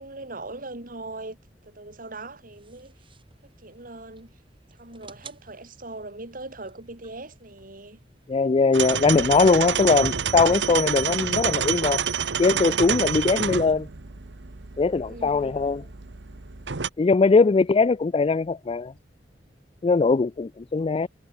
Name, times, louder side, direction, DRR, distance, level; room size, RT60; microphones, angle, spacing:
voice 1, 0.0-1.4 1.6-2.9 3.6-4.3 4.7-8.0 15.0-15.6, right 2 dB, 50° right, 3.4 m, -40 dB
sound 1, 2.5-9.5, right 5 dB, 30° right, 5.1 m, -54 dB
voice 2, 8.3-12.0 12.4-13.9 14.8-15.8 17.0-18.9 19.8-21.1, left 4 dB, 30° left, 0.4 m, -21 dB
sound 2, 8.7-16.9, right 7 dB, 85° right, 1.1 m, -28 dB
head